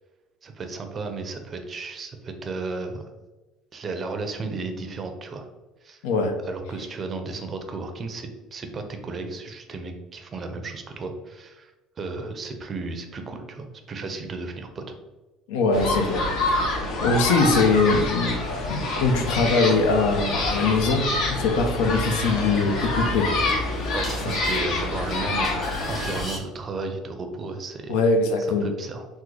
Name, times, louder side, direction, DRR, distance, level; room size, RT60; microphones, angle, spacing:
voice 1, 0.4-3.0 3.7-5.5 5.8-6.0 6.5-11.7 12.0-14.9 23.9-28.0 28.6-29.1, right 3 dB, 35° right, 6 dB, 0.5 m, -34 dB
voice 2, 6.0-6.3 15.5-16.5 17.0-18.4 18.7-23.3 24.3-24.4 27.9-28.7, left 3 dB, 90° left, 5 dB, 0.5 m, -22 dB
sound 1, 15.7-26.2, left 2 dB, 65° left, 0.8 m, -27 dB
sound 2, 17.6-23.2, equal, 10° left, 0.7 m, -39 dB
sound 3, 17.9-26.4, equal, 30° left, 1.3 m, -44 dB
3.6 x 2.1 x 3.1 m, 1.1 s
supercardioid pair, 110°, 0 cm